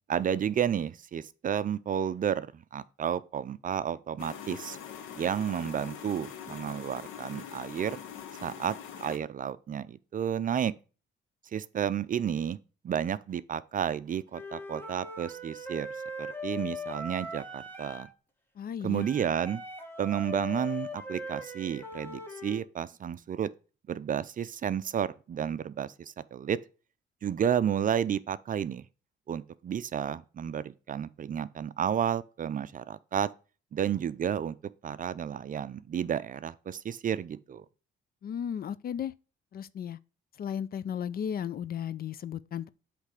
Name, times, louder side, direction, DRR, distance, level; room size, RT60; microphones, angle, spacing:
voice 1, 0.1-4.8 5.2-8.0 8.4-8.7 9.0-10.7 11.5-12.6 12.8-15.9 16.2-18.1 18.8-19.6 20.0-23.5 23.9-26.6 27.2-28.8 29.3-33.3 33.7-34.6 34.8-37.6, right 8 dB, 45° right, 0.5 m, -31 dB
sound 1, 4.2-9.2, left 9 dB, 90° left, 1.2 m, -43 dB
Wind instrument woodwind instrument, 14.3-18.1 19.0-22.6, left 1 dB, 10° left, 1.7 m, -40 dB
voice 2, 18.6-19.1 38.2-39.1 39.5-40.0 40.4-42.7, left 8 dB, 50° left, 0.5 m, -35 dB
8.0 x 3.3 x 4.9 m
cardioid pair, 90°, 20 cm